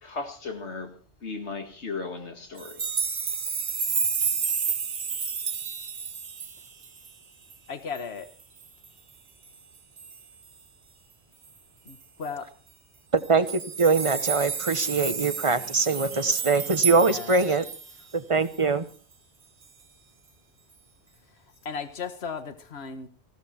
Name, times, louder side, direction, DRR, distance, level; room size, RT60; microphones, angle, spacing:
voice 1, 0.0-0.9 1.2-2.8, left 4 dB, 85° left, 2.3 m, -36 dB
sound 1, 2.6-7.1 7.5-7.6 8.0-8.1 8.4-8.9 10.0-10.2 11.9-12.0 12.2-12.3 13.2-18.1 18.5-18.6, right 6 dB, 80° right, 1.6 m, -30 dB
voice 2, 7.7-8.3 11.9-12.5 16.9-17.4 21.6-23.1, left 5 dB, 70° left, 1.7 m, -36 dB
voice 3, 13.1-13.5 13.8-17.6 18.1-18.8, right 4 dB, 30° right, 1.2 m, -23 dB
19.5 x 16.5 x 4.4 m
omnidirectional pair, 1.1 m